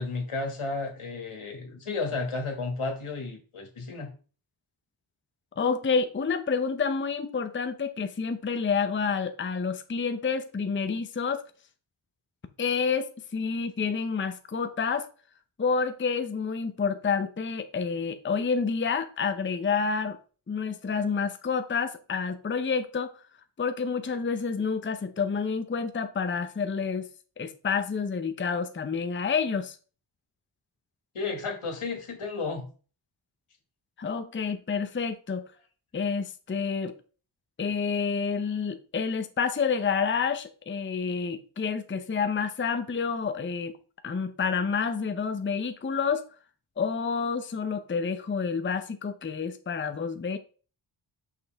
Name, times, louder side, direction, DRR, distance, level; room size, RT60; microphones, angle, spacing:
voice 1, 0.0-4.1 31.1-32.7, left 3 dB, 85° left, 1.9 m, -33 dB
voice 2, 5.6-11.4 12.6-15.1 15.6-20.2 20.5-23.1 23.6-27.1 27.4-29.8 34.0-35.5 35.9-37.0 37.6-43.8 44.0-46.2 46.8-50.4, left 5 dB, 25° left, 0.6 m, -29 dB
6.4 x 5.5 x 3.4 m
wide cardioid pair, 80°, 49 cm